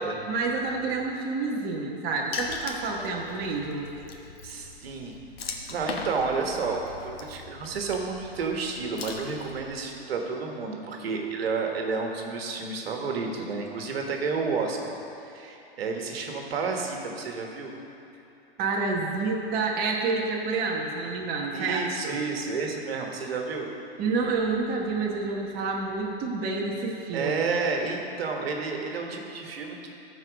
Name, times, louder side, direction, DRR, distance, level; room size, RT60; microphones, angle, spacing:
voice 1, 0.0-3.9 18.6-22.2 24.0-27.3, right 3 dB, 30° right, -1 dB, 1.1 m, -29 dB
Water / Splash splatter, 2.3-9.8, left 4 dB, 80° left, 1.2 m, -40 dB
voice 2, 4.4-5.1 5.5-14.9 15.2-17.7 21.5-23.7 27.1-29.9, right 4 dB, 75° right, 2 dB, 1.4 m, -31 dB
14.0 x 4.6 x 5.1 m, 2.9 s
hypercardioid pair, 130°, 30 cm